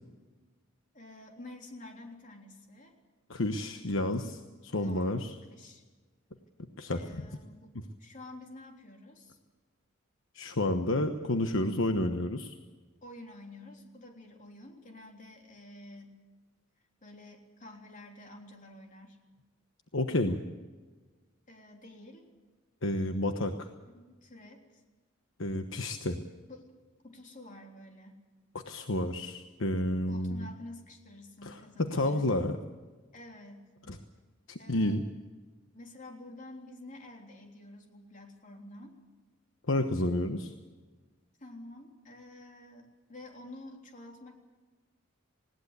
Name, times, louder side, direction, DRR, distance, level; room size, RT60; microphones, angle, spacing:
voice 1, 0.9-2.9 4.7-5.8 6.9-9.4 13.0-16.2 17.0-19.2 21.5-22.3 23.9-24.8 26.5-26.7 27.0-28.2 30.1-32.2 33.1-33.7 34.6-35.1 35.7-38.9 41.4-44.4, left 1 dB, 40° left, 2 dB, 3.5 m, -49 dB
voice 2, 3.3-5.4 6.8-7.2 10.3-12.5 19.9-20.4 22.8-23.7 25.4-26.2 28.7-30.5 31.4-31.6 31.9-32.5 33.9-34.0 34.5-35.0 39.7-40.5, left 1 dB, 65° left, 6 dB, 1.2 m, -30 dB
20.0 x 17.5 x 8.3 m, 1.3 s
head